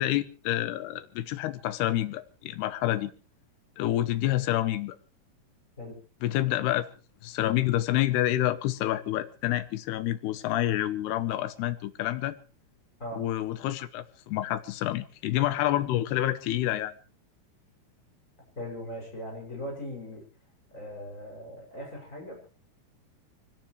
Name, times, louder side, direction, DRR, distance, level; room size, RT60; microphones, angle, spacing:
voice 1, 0.0-3.1 3.8-5.0 6.2-6.9 7.2-12.4 13.2-16.9, left 14 dB, 90° left, 3.0 m, -28 dB
voice 2, 18.6-20.2 20.7-22.5, left 1 dB, 20° left, 6.6 m, -39 dB
24.5 x 17.0 x 3.2 m
omnidirectional pair, 4.5 m